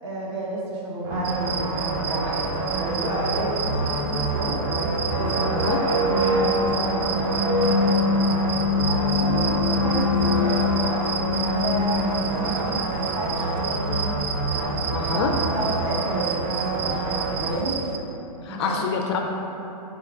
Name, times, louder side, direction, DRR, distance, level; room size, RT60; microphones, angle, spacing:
voice 1, 0.0-4.6 5.1-7.6 8.7-14.2 14.6-17.9 18.5-18.9, right 1 dB, 45° right, -5 dB, 1.1 m, -31 dB
sound 1, 1.0-17.5, right 2 dB, 25° right, 0.5 m, -28 dB
sound 2, 1.2-18.0, right 7 dB, 80° right, 0.4 m, -33 dB
sound 3, 4.1-12.8, left 3 dB, 65° right, 1.0 m, -24 dB
voice 2, 14.9-15.4 18.4-19.2, left 5 dB, 40° left, 3 dB, 0.4 m, -26 dB
5.0 x 4.4 x 2.4 m, 3.0 s
hypercardioid pair, 140°, 20 cm